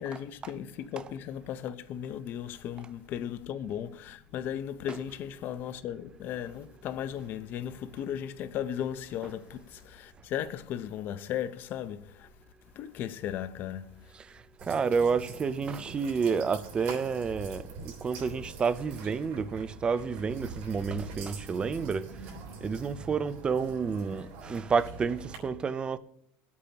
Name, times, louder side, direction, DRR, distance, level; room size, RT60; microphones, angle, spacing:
voice 1, 0.0-12.3 12.8-13.8, left 10 dB, 45° left, 0.7 m, -36 dB
voice 2, 14.6-22.1 22.6-26.0, right 5 dB, 20° right, 0.5 m, -30 dB
sound 1, 14.6-25.4, right 4 dB, 65° right, 3.3 m, -44 dB
22.5 x 8.4 x 2.9 m
cardioid pair, 155°, 5 cm